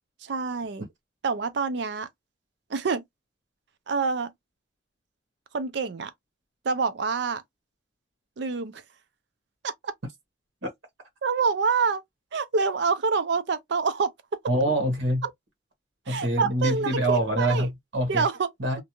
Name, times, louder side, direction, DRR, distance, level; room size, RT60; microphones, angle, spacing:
voice 1, 0.2-0.8 1.2-2.1 2.7-3.0 3.9-4.3 5.5-6.1 6.6-7.4 8.4-8.8 9.6-9.9 11.2-12.0 12.3-14.1 15.2-15.3 16.1-17.7 18.1-18.5, right 5 dB, 65° right, 0.5 m, -26 dB
voice 2, 14.5-15.2 16.1-18.3 18.6-18.8, right 1 dB, 85° right, 1.0 m, -25 dB
2.5 x 2.2 x 2.9 m
head